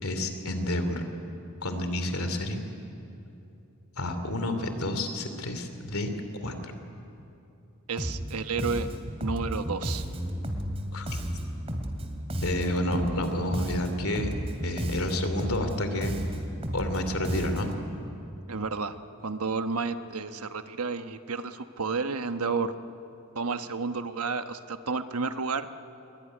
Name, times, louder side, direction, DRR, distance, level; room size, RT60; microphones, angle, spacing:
voice 1, 0.0-1.0 1.6-2.6 4.0-6.1 6.4-6.7 10.9-11.1 12.4-14.3 14.6-16.2 16.7-17.7, left 1 dB, 75° left, 7 dB, 2.9 m, -30 dB
voice 2, 7.9-8.9 9.2-10.0 18.5-22.7 23.3-25.7, right 4 dB, 90° right, 9 dB, 1.2 m, -31 dB
Bass guitar, 8.0-8.3 8.6-13.3 13.5-17.9, equal, 25° right, 2.7 m, -33 dB
24.5 x 22.5 x 10.0 m, 2.8 s
head